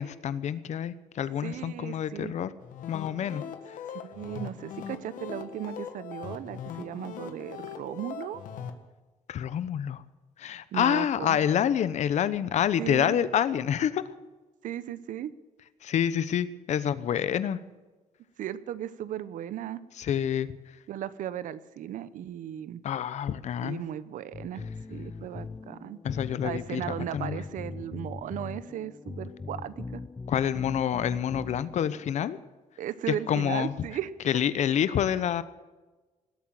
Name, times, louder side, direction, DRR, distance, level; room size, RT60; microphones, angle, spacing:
voice 1, 0.0-2.5 2.9-3.4 3.7-3.8 9.3-10.0 10.4-14.0 15.8-17.6 20.0-20.5 22.8-23.8 26.0-27.4 30.3-32.4 33.1-33.7 34.3-35.4, left 9 dB, 60° left, 15 dB, 0.9 m, -27 dB
voice 2, 1.4-2.4 3.9-8.4 10.7-11.4 12.8-13.2 14.6-15.3 18.4-19.8 20.9-22.8 23.6-24.6 24.9-26.0 26.4-30.0 32.8-34.1, right 11 dB, 75° right, 15 dB, 0.9 m, -36 dB
sound 1, 2.6-8.7, left 8 dB, 80° left, 1.6 m, -40 dB
sound 2, 24.3-32.1, left 4 dB, 20° left, 0.4 m, -40 dB
19.5 x 8.8 x 7.7 m, 1.2 s
cardioid pair, 115°, 13 cm